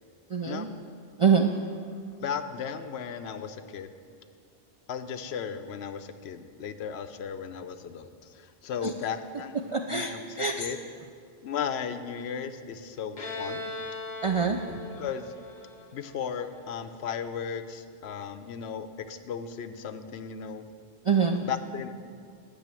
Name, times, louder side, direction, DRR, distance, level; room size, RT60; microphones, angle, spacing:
voice 1, 0.3-0.7 1.2-1.5 8.8-8.9 9.7-10.1 10.4-10.7 14.2-14.6 21.1-21.5, right 6 dB, 55° right, 4 dB, 0.3 m, -24 dB
voice 2, 2.2-3.9 4.9-9.6 9.9-10.8 11.4-13.7 15.0-15.3 15.9-20.7 21.4-21.9, left 7 dB, 80° left, 10 dB, 0.9 m, -36 dB
Bowed string instrument, 13.2-16.7, left 2 dB, 45° left, 1.1 m, -39 dB
10.5 x 6.3 x 7.6 m, 2.2 s
omnidirectional pair, 1.1 m